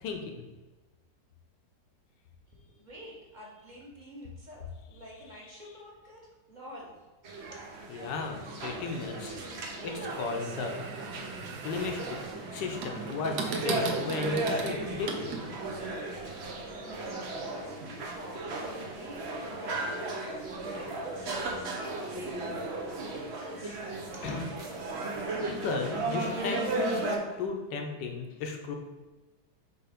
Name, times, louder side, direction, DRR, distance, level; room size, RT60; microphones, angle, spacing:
voice 1, 0.0-0.5 7.9-9.4 9.8-10.8 11.6-12.2 12.5-15.4 24.2-24.4 25.4-28.7, left 4 dB, 75° left, 3 dB, 1.5 m, -35 dB
voice 2, 2.5-7.0 16.8-20.1 20.4-23.8 24.1-24.2, equal, 25° right, -4 dB, 1.3 m, -46 dB
sound 1, 7.2-27.2, right 2 dB, 50° right, 0.8 m, -36 dB
sound 2, 10.1-15.8, right 4 dB, 70° right, 1.3 m, -38 dB
5.7 x 3.5 x 5.0 m, 1.2 s
omnidirectional pair, 2.0 m